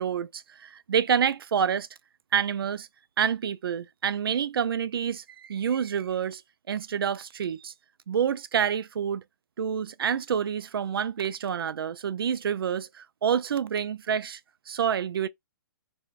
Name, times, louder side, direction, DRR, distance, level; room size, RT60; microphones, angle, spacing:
voice 1, 0.0-1.9 2.3-2.9 3.2-6.4 6.7-7.7 8.1-9.2 9.6-14.4 14.7-15.3, right 8 dB, 90° right, 0.4 m, -28 dB
3.4 x 2.5 x 2.3 m
hypercardioid pair, 170°, 12 cm